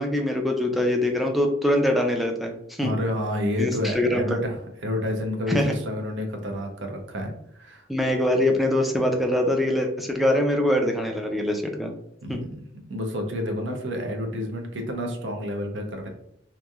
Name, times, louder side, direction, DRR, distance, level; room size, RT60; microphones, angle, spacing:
voice 1, 0.0-3.0 3.6-4.2 5.5-5.8 7.9-11.9 12.3-12.4, left 1 dB, ahead, 2 dB, 0.3 m, -23 dB
voice 2, 2.8-4.6 4.8-5.6 5.9-7.3 7.6-7.9 12.2-12.5 12.9-16.1, left 1 dB, 70° right, 3 dB, 0.6 m, -29 dB
3.0 x 2.5 x 2.3 m, 0.72 s
head